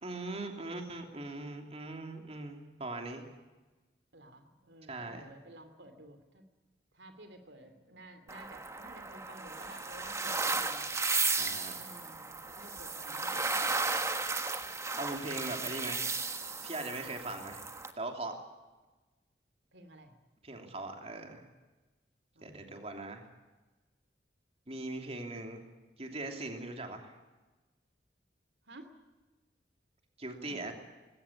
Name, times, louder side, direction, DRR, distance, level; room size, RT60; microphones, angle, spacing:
voice 1, 0.0-3.3 4.9-5.3 11.4-11.8 15.0-16.1 16.6-17.6 18.0-18.4 20.4-21.4 22.4-23.2 24.7-25.6 26.0-27.2 30.2-30.7, right 2 dB, 35° right, 4 dB, 3.0 m, -40 dB
voice 2, 4.1-6.5 6.9-10.9 11.8-14.0 19.7-20.2 22.3-22.8 28.6-28.9 30.4-30.7, right 1 dB, 80° right, 8 dB, 2.7 m, -53 dB
sound 1, 8.3-17.9, right 3 dB, 15° right, 1.4 m, -34 dB
20.5 x 17.5 x 9.9 m, 1.2 s
head